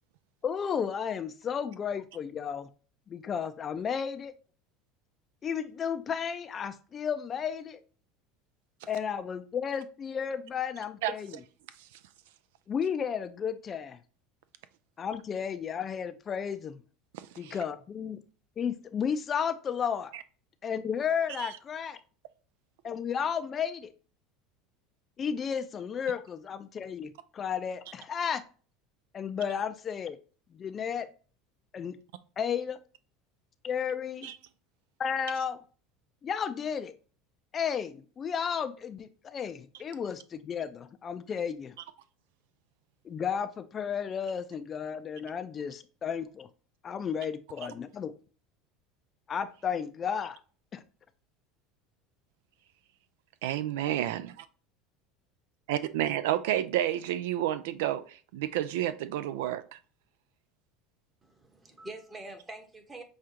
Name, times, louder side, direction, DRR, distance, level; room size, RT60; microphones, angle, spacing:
voice 1, 0.4-2.7 3.1-4.3 5.4-7.8 8.9-11.4 12.7-14.0 15.0-16.8 17.4-18.2 18.6-20.1 20.6-22.0 22.8-23.9 25.2-28.4 29.1-30.2 30.5-31.1 31.7-32.0 32.4-32.8 33.6-34.3 35.0-35.6 36.2-36.9 37.5-41.7 43.0-46.5 46.8-48.1 49.3-50.4 50.7-50.8, left 7 dB, 35° left, 0.4 m, -33 dB
voice 2, 17.1-17.6 20.1-20.2 21.4-21.5 34.2-34.4 53.4-54.3 55.7-59.8, right 12 dB, 80° right, 0.3 m, -30 dB
voice 3, 61.2-63.0, right 2 dB, 20° right, 1.0 m, -45 dB
6.3 x 2.4 x 2.9 m
supercardioid pair, 110°, 0 cm